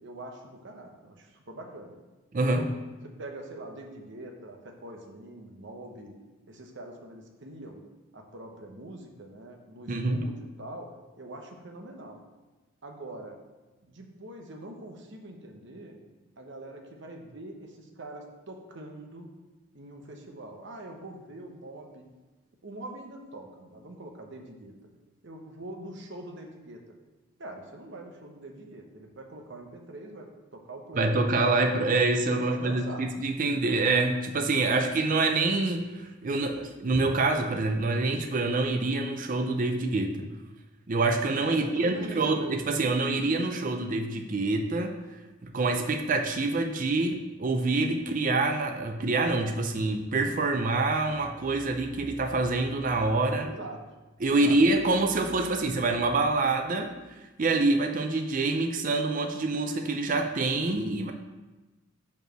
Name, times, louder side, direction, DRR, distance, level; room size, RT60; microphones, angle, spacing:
voice 1, 0.0-2.0 2.6-2.7 3.0-6.1 6.5-7.9 8.1-12.2 12.8-13.4 13.9-16.0 16.4-19.3 19.7-22.1 22.6-24.8 25.2-26.8 27.4-31.2 32.4-33.0 33.5-33.8 41.5-42.4 53.4-53.9 54.3-54.9, right 1 dB, 55° right, 3 dB, 0.9 m, -43 dB
voice 2, 2.3-2.7 9.9-10.2 31.0-40.3 40.9-45.0 45.4-53.5 54.2-56.9 57.4-61.1, right 3 dB, 40° right, 5 dB, 0.4 m, -26 dB
5.3 x 4.7 x 6.1 m, 1.1 s
head